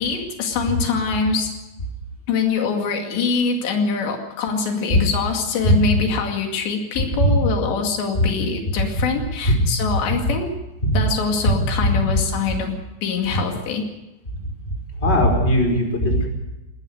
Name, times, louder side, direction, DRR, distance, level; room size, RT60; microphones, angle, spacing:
voice 1, 0.0-1.5 2.3-10.5 10.9-12.7 13.0-13.9, left 5 dB, 85° left, 3 dB, 4.6 m, -24 dB
voice 2, 15.0-16.3, equal, 15° left, 1 dB, 4.9 m, -18 dB
20.5 x 18.0 x 7.9 m, 0.98 s
omnidirectional pair, 4.9 m